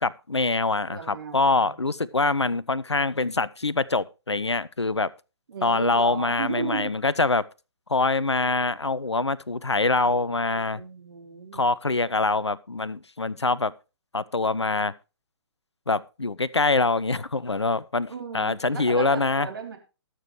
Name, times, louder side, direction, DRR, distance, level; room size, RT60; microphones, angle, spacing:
voice 1, 0.0-5.1 5.6-7.4 7.9-10.8 11.5-13.7 14.1-14.9 15.9-19.5, left 3 dB, 85° left, 0.5 m, -24 dB
voice 2, 0.9-1.7 5.5-6.9 10.5-11.7 18.1-19.8, right 5 dB, 60° right, 3.1 m, -35 dB
20.0 x 6.9 x 3.1 m
figure-of-eight pair, 125°, 14 cm